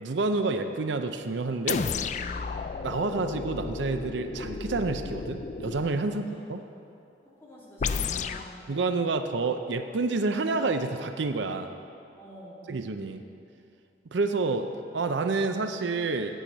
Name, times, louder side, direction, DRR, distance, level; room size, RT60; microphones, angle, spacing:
voice 1, 0.0-1.8 2.8-6.2 6.5-6.6 8.7-11.7 12.7-13.2 14.1-14.7 14.9-16.4, right 3 dB, 80° right, 8 dB, 0.6 m, -28 dB
sound 1, 1.7-6.0 7.8-8.5, left 5 dB, 40° left, 0.3 m, -32 dB
voice 2, 7.4-8.6 12.1-12.7, equal, 15° left, -8 dB, 2.7 m, -48 dB
8.9 x 8.3 x 7.8 m, 2.6 s
head